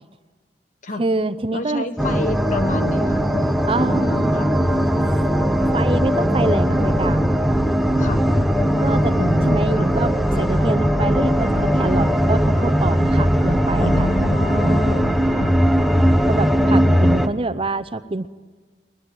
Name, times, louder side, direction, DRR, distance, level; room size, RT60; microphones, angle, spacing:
voice 1, 1.0-1.8 3.7-4.4 5.7-7.3 8.8-14.1 14.6-15.2 16.3-18.3, right 2 dB, 30° right, 13 dB, 0.7 m, -25 dB
voice 2, 1.5-4.9 8.0-8.3 9.1-9.9 13.8-15.6, left 1 dB, 45° left, 9 dB, 1.4 m, -29 dB
sound 1, 2.0-17.3, equal, ahead, 1.0 m, -19 dB
Wind instrument woodwind instrument, 9.1-14.8, left 1 dB, 25° left, 3.1 m, -38 dB
22.0 x 20.5 x 9.6 m, 1.4 s
head